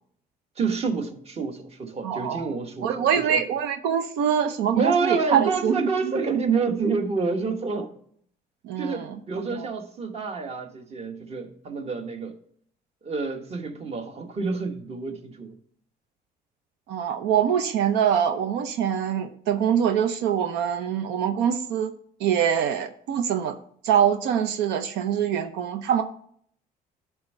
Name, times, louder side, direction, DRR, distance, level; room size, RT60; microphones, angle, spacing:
voice 1, 0.6-3.4 4.7-7.9 8.8-12.4 13.0-15.6, right 4 dB, 40° right, 1.2 m, -28 dB
voice 2, 2.0-2.5 2.8-6.2 8.6-9.7 16.9-21.9 22.2-23.6 23.8-26.0, right 8 dB, 90° right, 0.6 m, -24 dB
10.5 x 3.6 x 5.3 m
cardioid pair, 110°, 17 cm